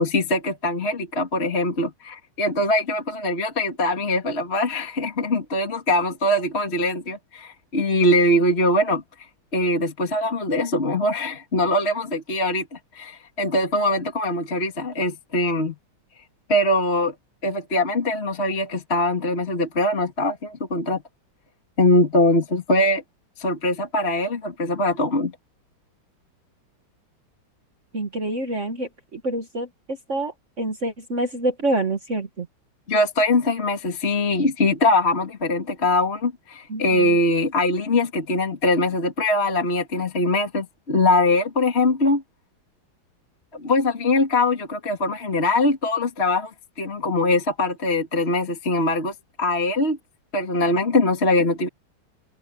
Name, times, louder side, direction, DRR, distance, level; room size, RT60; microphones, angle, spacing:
voice 1, 0.0-9.0 9.5-15.8 16.5-17.1 17.4-21.0 21.8-23.0 23.4-25.3 32.9-42.2 43.5-46.5 46.8-50.0 50.3-51.7, left 1 dB, 30° left, 2.6 m, -22 dB
voice 2, 27.9-32.5 36.7-37.2, right 2 dB, 35° right, 1.7 m, -27 dB
open air
omnidirectional pair, 2.3 m